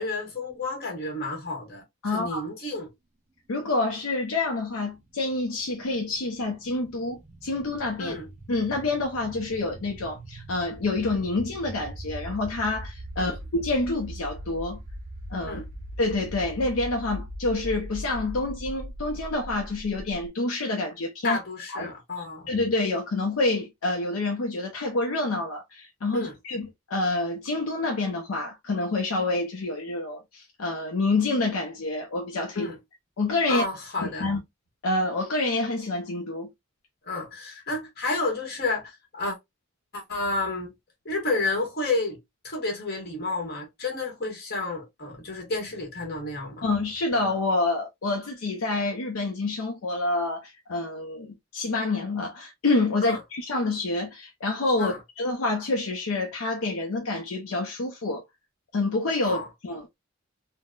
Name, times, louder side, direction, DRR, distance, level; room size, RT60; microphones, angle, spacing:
voice 1, 0.0-2.9 8.0-8.3 13.2-13.3 15.5-15.6 21.2-22.5 26.1-26.3 32.5-32.8 33.5-34.3 37.1-39.4 39.9-40.7 41.0-42.2 42.4-46.7 53.0-53.2 54.8-55.0 59.2-59.5, left 2 dB, 45° left, 1.2 m, -31 dB
voice 2, 2.0-2.5 3.5-8.1 8.5-14.8 15.3-15.6 16.0-21.4 21.7-21.9 22.5-32.7 33.2-33.6 34.0-34.4 34.8-36.5 46.6-58.2 58.7-59.4 59.6-60.0, left 2 dB, 70° left, 0.5 m, -27 dB
sound 1, 4.4-20.3, equal, 35° right, 0.5 m, -40 dB
3.7 x 2.1 x 2.3 m
head